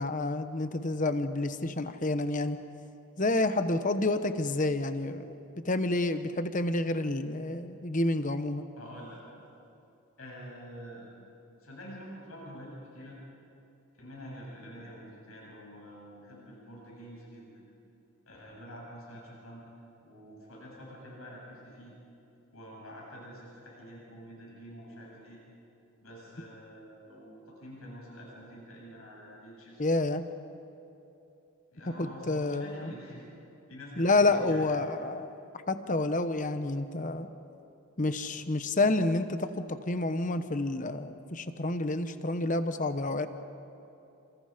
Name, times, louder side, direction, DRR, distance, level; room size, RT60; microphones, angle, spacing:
voice 1, 0.0-2.6 3.2-5.3 5.6-8.6 29.8-30.2 32.0-32.9 34.0-35.3 35.7-37.3 38.0-43.3, left 2 dB, 35° left, 10 dB, 1.0 m, -29 dB
voice 2, 8.8-9.2 10.2-11.1 11.6-13.2 13.9-17.7 18.3-19.6 20.0-21.9 22.5-25.4 26.0-29.9 31.7-33.3 33.7-34.8, equal, 80° left, -3 dB, 8.0 m, -47 dB
29.0 x 27.5 x 5.1 m, 2.8 s
head